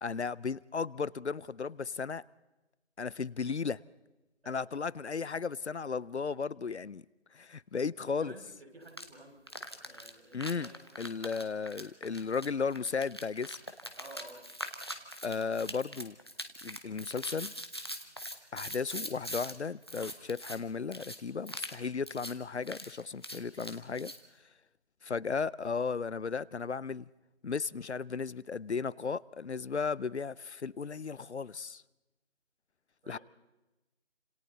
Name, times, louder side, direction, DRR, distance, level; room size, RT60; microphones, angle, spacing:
voice 1, 0.0-2.2 3.0-3.8 4.5-7.0 7.3-8.3 10.3-10.7 11.0-13.6 15.2-16.1 16.6-17.5 18.5-24.1 25.0-27.1 27.4-31.8 33.1-33.2, left 5 dB, 70° left, 0.7 m, -35 dB
voice 2, 4.4-4.8 8.0-9.5 9.8-11.5 14.0-14.5 33.0-33.2, right 1 dB, 60° right, 6.1 m, -52 dB
sound 1, 8.9-9.1 9.5-19.5 19.8-20.6 20.9-21.2 21.5-21.8 22.1-22.3 22.6-24.2, equal, 20° left, 1.0 m, -42 dB
29.0 x 27.0 x 4.0 m
figure-of-eight pair, 180°, 35 cm